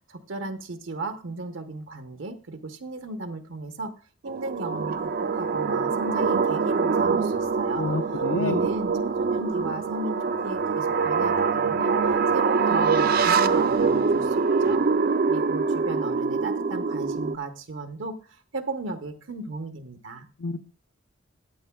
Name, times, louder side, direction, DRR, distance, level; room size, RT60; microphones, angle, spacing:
voice 1, 0.1-3.9 4.2-7.9 8.4-11.9 12.3-14.8 15.3-18.2 18.5-20.3, right 2 dB, 75° right, 7 dB, 0.9 m, -35 dB
sound 1, 4.3-17.4, right 5 dB, 45° right, 0.4 m, -24 dB
voice 2, 7.8-8.6 20.4-20.7, left 4 dB, 75° left, 9 dB, 0.5 m, -29 dB
14.0 x 9.0 x 2.3 m, 0.37 s
head